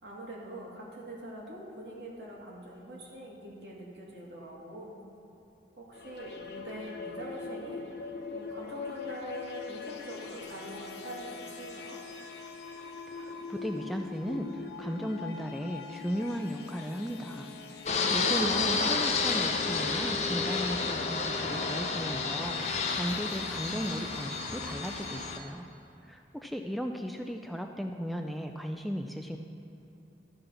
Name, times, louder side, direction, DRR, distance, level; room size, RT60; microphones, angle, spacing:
voice 1, 0.0-5.0 5.8-12.0 18.2-18.9, right 1 dB, 75° right, -4 dB, 2.2 m, -44 dB
sound 1, 5.9-25.4, left 4 dB, 75° left, 0.9 m, -42 dB
voice 2, 13.2-17.5 18.1-25.7 26.0-29.4, equal, ahead, 4 dB, 0.3 m, -36 dB
Fixed-wing aircraft airplane, 17.9-25.4, left 4 dB, 40° left, 0.6 m, -31 dB
13.0 x 4.9 x 6.2 m, 3.0 s
head